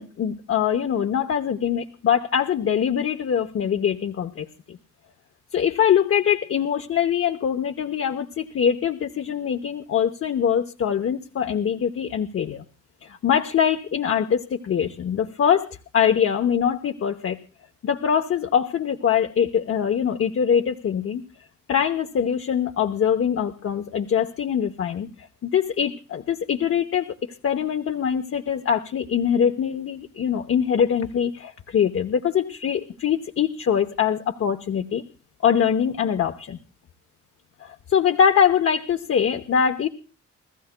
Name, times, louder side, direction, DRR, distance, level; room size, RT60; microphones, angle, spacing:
voice 1, 0.0-4.8 5.5-12.6 13.0-17.4 17.8-21.2 21.7-27.1 27.4-35.0 35.4-36.6 37.6-39.9, left 8 dB, 50° left, 5 dB, 0.9 m, -23 dB
29.0 x 14.0 x 2.2 m, 0.35 s
cardioid pair, 90°, 30 cm